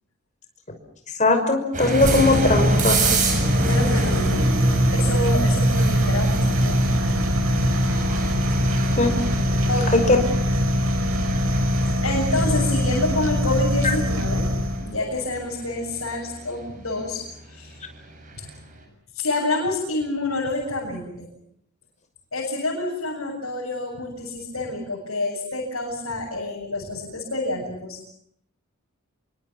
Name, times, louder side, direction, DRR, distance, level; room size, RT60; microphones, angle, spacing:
voice 1, 1.2-3.2 9.0-9.1 9.9-10.2, left 2 dB, 35° left, 6 dB, 5.8 m, -19 dB
sound 1, 1.7-18.5, right 2 dB, 40° right, 7.7 m, -27 dB
sound 2, 2.0-15.0, left 1 dB, 80° right, 5.0 m, -23 dB
voice 2, 3.7-4.4 4.9-7.1 9.7-10.2 11.9-14.4 14.8-17.8 18.4-18.5 19.1-21.3 22.3-28.0, left 2 dB, 80° left, -2 dB, 7.5 m, -28 dB
28.5 x 24.5 x 7.3 m, 0.69 s
head